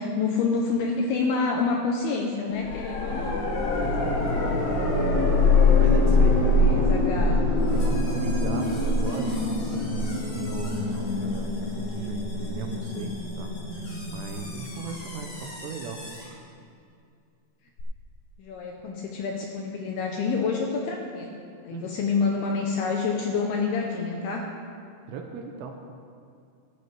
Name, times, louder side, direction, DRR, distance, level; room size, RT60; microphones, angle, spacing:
voice 1, 0.0-3.4 6.4-7.5 18.4-24.5, left 4 dB, 80° left, 1 dB, 2.4 m, -28 dB
sound 1, 2.6-15.4 17.8-17.9, left 2 dB, 65° left, 2.0 m, -24 dB
voice 2, 3.8-4.2 5.1-7.0 7.7-9.4 10.3-16.0 21.7-21.9 25.1-25.7, right 5 dB, 80° right, 3 dB, 2.7 m, -37 dB
sound 2, 7.6-16.4, left 1 dB, 45° left, 3.4 m, -45 dB
17.0 x 11.0 x 3.3 m, 2.4 s
omnidirectional pair, 5.4 m